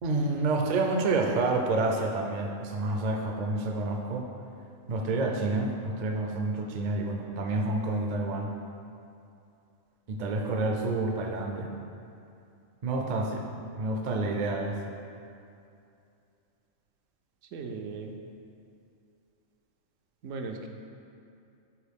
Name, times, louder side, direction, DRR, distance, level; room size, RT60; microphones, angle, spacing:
voice 1, 0.0-4.3 4.9-8.5 10.1-11.7 12.8-13.4 13.8-14.8, right 2 dB, 55° right, 2 dB, 0.5 m, -28 dB
voice 2, 17.5-18.1 20.2-20.7, right 4 dB, 80° right, 3 dB, 0.9 m, -37 dB
7.1 x 4.0 x 3.5 m, 2.6 s
omnidirectional pair, 1.3 m